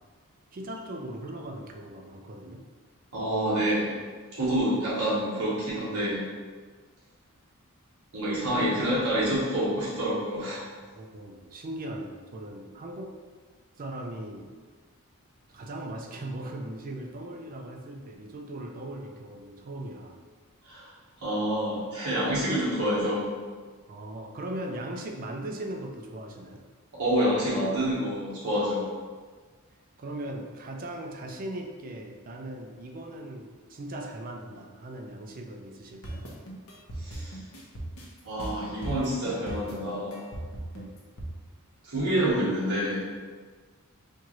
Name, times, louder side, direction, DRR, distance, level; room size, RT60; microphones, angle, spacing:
voice 1, 0.5-2.6 8.5-8.7 11.0-13.1 13.7-14.5 15.5-20.2 23.9-26.6 30.0-36.3 40.7-41.0, right 1 dB, 40° right, 2 dB, 0.4 m, -39 dB
voice 2, 3.1-4.0 4.3-6.2 8.1-10.6 20.6-20.9 21.2-23.3 26.9-28.9 37.0-37.4 38.2-40.2 41.8-43.0, equal, 85° right, -9 dB, 1.1 m, -27 dB
sound 1, 36.0-41.3, right 1 dB, 70° left, 0.8 m, -37 dB
4.4 x 2.4 x 2.9 m, 1.5 s
head